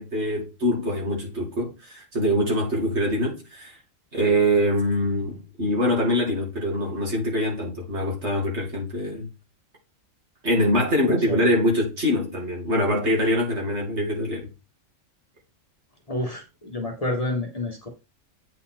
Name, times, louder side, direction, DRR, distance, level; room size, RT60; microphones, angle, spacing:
voice 1, 0.0-3.7 4.1-9.3 10.4-14.5, equal, 60° right, 2.9 m, -24 dB
voice 2, 16.1-17.9, left 2 dB, 30° left, 1.5 m, -29 dB
8.3 x 4.1 x 4.4 m
omnidirectional pair, 1.3 m